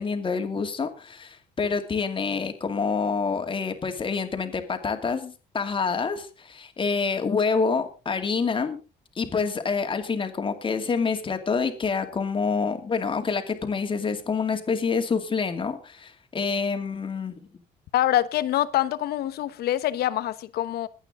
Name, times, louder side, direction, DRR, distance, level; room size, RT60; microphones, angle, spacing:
voice 1, 0.0-8.8 9.2-17.3, left 5 dB, 30° left, 2.5 m, -27 dB
voice 2, 17.9-20.9, left 13 dB, 70° left, 1.2 m, -25 dB
22.0 x 9.0 x 3.8 m
cardioid pair, 110°, 17 cm